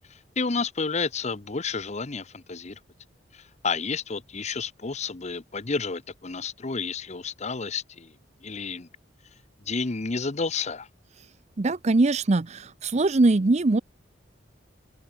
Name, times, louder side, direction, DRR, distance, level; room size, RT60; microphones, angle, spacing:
voice 1, 0.1-2.8 3.3-8.2 8.4-8.9 9.7-10.9, left 4 dB, 35° left, 0.9 m, -31 dB
voice 2, 11.6-13.8, right 2 dB, 35° right, 0.6 m, -22 dB
open air
head